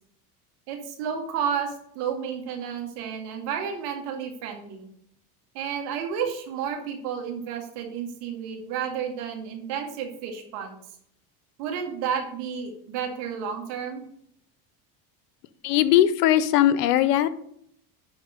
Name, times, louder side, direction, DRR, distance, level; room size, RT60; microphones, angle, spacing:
voice 1, 0.7-4.9 5.5-10.8 11.6-14.0, right 7 dB, 75° right, 3 dB, 2.1 m, -31 dB
voice 2, 15.6-17.3, left 12 dB, 85° left, 15 dB, 0.8 m, -19 dB
11.0 x 3.7 x 6.3 m, 0.70 s
supercardioid pair, 90°, 46 cm